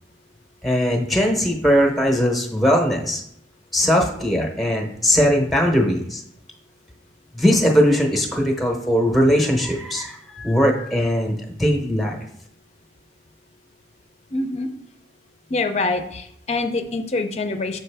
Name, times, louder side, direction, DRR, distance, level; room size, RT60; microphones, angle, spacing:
voice 1, 0.6-3.2 3.7-6.2 7.3-12.2, equal, ahead, 1 dB, 0.8 m, -19 dB
voice 2, 14.3-14.7 15.5-17.8, left 3 dB, 35° left, 7 dB, 0.4 m, -25 dB
6.5 x 4.7 x 3.4 m, 0.71 s
head